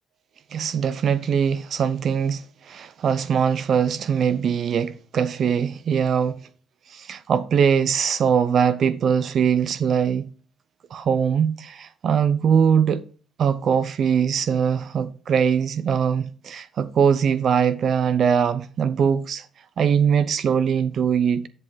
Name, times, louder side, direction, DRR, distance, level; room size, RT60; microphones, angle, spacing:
voice 1, 0.5-6.4 6.9-10.3 10.9-13.0 13.4-19.5 19.8-21.5, right 7 dB, 60° right, 0.7 m, -21 dB
10.5 x 5.4 x 4.0 m
cardioid pair, 90°, 0 cm